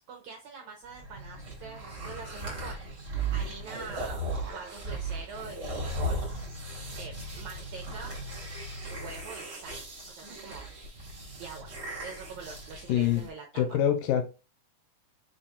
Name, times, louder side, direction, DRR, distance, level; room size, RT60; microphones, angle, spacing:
voice 1, 0.1-4.3 4.5-6.4 7.0-8.2 8.9-10.7 11.4-11.7 12.0-13.8, right 5 dB, 80° right, 2 dB, 1.7 m, -45 dB
sound 1, 0.9-13.3, right 2 dB, 40° right, 0.9 m, -37 dB
sound 2, 4.2-8.1 8.7-8.8, right 4 dB, 60° right, 1.5 m, -54 dB
voice 2, 12.9-13.3 13.5-14.3, left 10 dB, 80° left, 7 dB, 2.1 m, -25 dB
5.0 x 4.3 x 2.3 m, 0.31 s
omnidirectional pair, 4.2 m